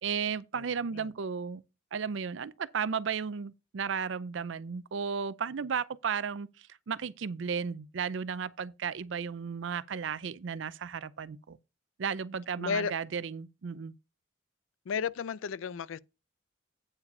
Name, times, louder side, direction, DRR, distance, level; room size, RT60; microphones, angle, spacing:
voice 1, 0.0-1.6 1.9-11.6 12.0-13.9, right 6 dB, 70° right, 0.5 m, -34 dB
voice 2, 12.6-12.9 14.9-16.0, left 6 dB, 85° left, 0.4 m, -33 dB
8.8 x 4.7 x 5.3 m
head